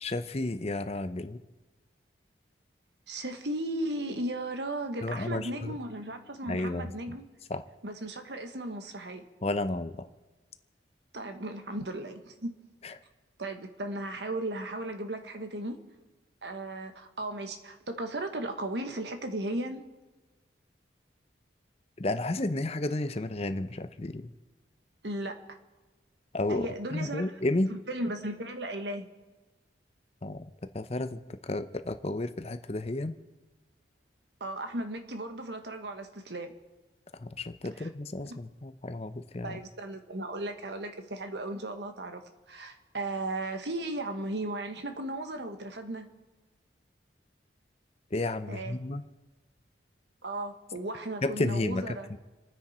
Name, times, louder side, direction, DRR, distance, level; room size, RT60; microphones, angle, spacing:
voice 1, 0.0-1.4 5.0-5.7 6.5-6.9 7.5-7.6 9.4-10.0 12.8-12.9 22.0-24.3 26.3-27.7 30.2-30.5 30.7-33.1 37.2-39.6 48.1-49.0 51.2-52.2, left 2 dB, 35° left, 10 dB, 0.7 m, -32 dB
voice 2, 3.1-7.2 7.8-9.2 11.1-12.5 13.4-15.8 16.4-19.8 25.0-25.4 26.5-27.4 27.7-29.1 34.4-36.5 37.7-37.9 38.2-38.4 39.4-42.2 42.5-46.1 48.5-48.8 50.2-52.1, right 1 dB, 70° right, 6 dB, 1.6 m, -36 dB
28.5 x 9.9 x 4.4 m, 1.2 s
head